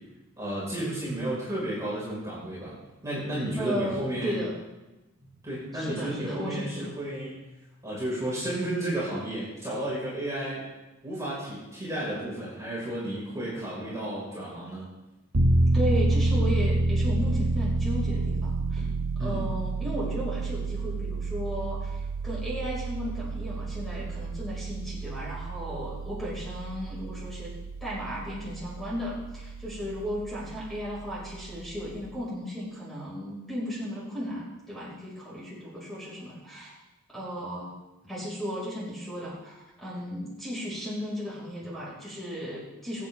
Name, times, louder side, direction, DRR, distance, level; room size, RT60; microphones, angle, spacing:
voice 1, 0.4-2.7 3.0-4.4 5.2-7.4 7.8-10.7 11.0-14.8 19.2-19.4, right 1 dB, 15° right, -8 dB, 5.0 m, -32 dB
voice 2, 3.6-4.5 5.7-6.8 15.7-18.9 19.2-27.5 27.8-36.8 37.1-37.7 38.0-43.1, equal, ahead, -7 dB, 5.4 m, -35 dB
Piano, 15.3-32.0, right 2 dB, 85° right, 1.1 m, -29 dB
24.0 x 8.7 x 3.6 m, 1.0 s
head